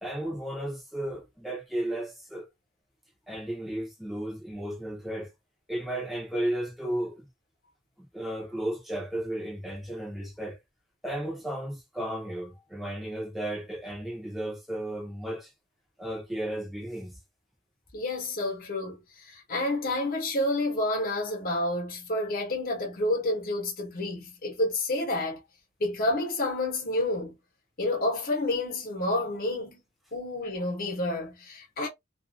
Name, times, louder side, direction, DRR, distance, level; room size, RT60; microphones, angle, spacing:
voice 1, 0.0-2.5 3.3-5.3 5.7-7.3 8.0-10.6 11.0-15.5 16.0-17.2, right 1 dB, ahead, 0.7 m, -34 dB
voice 2, 17.9-25.4 25.8-27.3 27.8-29.8 30.1-31.9, left 1 dB, 45° left, 1.0 m, -29 dB
2.5 x 2.4 x 2.5 m
head